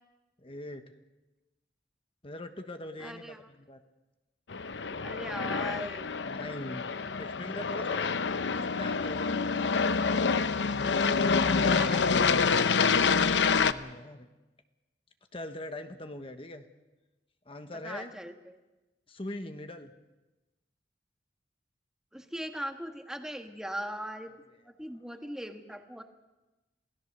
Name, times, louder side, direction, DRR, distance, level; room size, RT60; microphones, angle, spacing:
voice 1, 0.4-0.8 2.2-3.8 6.2-6.9 7.2-8.1 8.5-9.5 13.6-14.3 15.3-16.7 17.4-18.1 19.1-19.9, left 1 dB, 30° left, 7 dB, 1.2 m, -41 dB
voice 2, 3.0-3.4 5.0-6.1 11.3-12.2 17.8-18.5 22.1-24.3 24.6-26.0, equal, 5° right, 5 dB, 1.5 m, -39 dB
Aircraft, 4.5-13.7, left 5 dB, 85° left, 0.8 m, -27 dB
27.5 x 17.0 x 6.7 m, 1.1 s
head